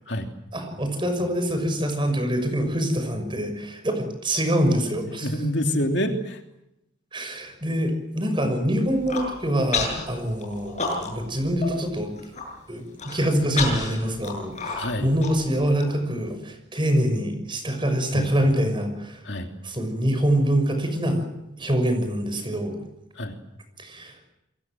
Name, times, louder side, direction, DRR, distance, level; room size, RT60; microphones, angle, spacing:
voice 1, 0.5-5.3 7.1-12.1 12.7-19.2 19.6-21.3 21.6-22.8 23.8-24.3, equal, 25° right, 7 dB, 6.1 m, -25 dB
voice 2, 5.2-6.4 14.8-15.1 18.1-18.3 19.2-19.5 23.2-23.4, equal, 60° left, 4 dB, 3.0 m, -26 dB
Human voice, 8.8-9.3 9.7-10.0 10.4-11.3 11.6-11.7 12.1-12.4 13.0-15.8, left 4 dB, 35° left, 7.7 m, -29 dB
28.5 x 23.0 x 7.7 m, 0.87 s
head